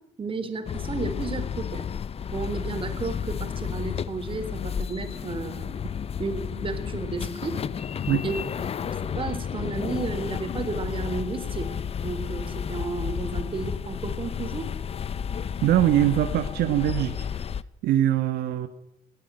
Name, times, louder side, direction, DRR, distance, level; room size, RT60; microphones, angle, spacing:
voice 1, 0.2-1.9 2.3-5.8 6.2-7.6 8.2-8.4 8.8-11.7 12.0-14.7, right 4 dB, 30° right, 8 dB, 3.7 m, -33 dB
sound 1, 0.7-17.6, left 7 dB, 35° left, 0.8 m, -32 dB
voice 2, 15.6-17.3 17.8-18.7, right 12 dB, 75° right, 8 dB, 1.5 m, -22 dB
20.5 x 15.5 x 9.1 m, 0.83 s
cardioid pair, 110°, 17 cm